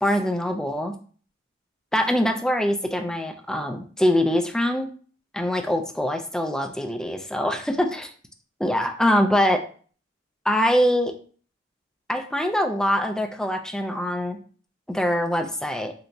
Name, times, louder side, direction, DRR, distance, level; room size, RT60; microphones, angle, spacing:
voice 1, 0.0-0.9 1.9-4.9 5.3-8.1 8.6-9.6 10.5-11.1 12.1-14.4 14.9-15.9, equal, 5° left, 4 dB, 0.3 m, -23 dB
3.3 x 2.9 x 2.6 m, 0.43 s
head